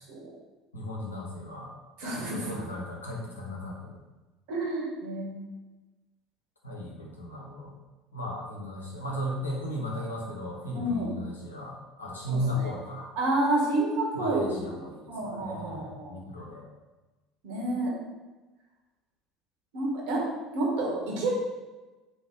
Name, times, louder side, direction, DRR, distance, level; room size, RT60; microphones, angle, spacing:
voice 1, 0.7-1.7 2.1-4.0 6.6-7.7 8.1-13.1 14.1-16.6, left 1 dB, 80° left, -3 dB, 0.8 m, -36 dB
voice 2, 2.0-2.6 4.5-5.3 10.7-11.1 12.3-12.7 13.2-14.7 15.1-16.2 17.4-17.9 19.7-20.2 20.5-21.3, right 2 dB, 60° right, -3 dB, 1.3 m, -29 dB
3.7 x 2.7 x 4.4 m, 1.2 s
figure-of-eight pair, 65°, 0 cm